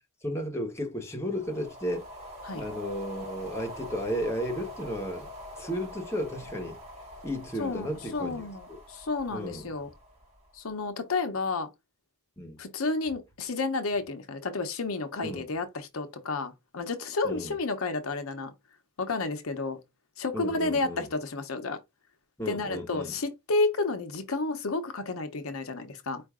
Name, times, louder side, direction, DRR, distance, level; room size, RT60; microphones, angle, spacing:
voice 1, 0.2-2.1 2.5-5.3 5.6-6.8 7.2-8.8 9.3-9.7 12.4-12.6 15.2-15.5 17.2-17.6 20.3-21.1 22.4-23.1, equal, 10° left, 1.0 m, -34 dB
sound 1, 1.2-10.7, left 1 dB, 30° right, 2.3 m, -44 dB
voice 2, 7.6-9.9 10.5-11.7 12.6-18.5 19.0-19.8 20.2-21.8 22.5-26.2, left 3 dB, 70° left, 0.8 m, -31 dB
4.7 x 2.5 x 3.6 m
head